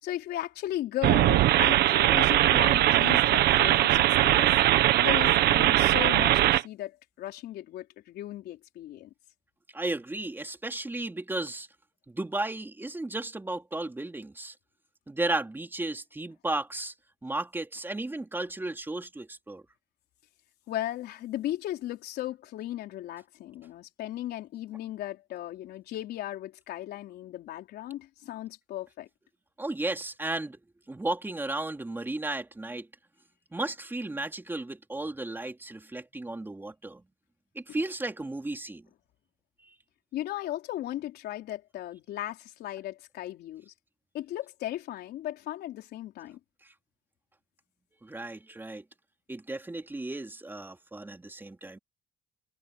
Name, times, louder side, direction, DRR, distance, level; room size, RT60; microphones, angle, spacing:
voice 1, 0.0-4.6 5.0-9.1 20.7-29.1 37.7-37.8 40.1-43.7 44.1-46.4, left 13 dB, 75° left, 4.2 m, -36 dB
sound 1, 1.0-6.6, right 14 dB, 75° right, 1.2 m, -21 dB
voice 2, 9.7-11.7 12.1-14.5 15.1-16.9 17.2-19.6 29.6-30.6 30.9-32.9 33.5-37.0 37.5-38.8 48.0-48.8 49.3-51.8, right 2 dB, 10° right, 3.1 m, -34 dB
cardioid pair, 110°, 17 cm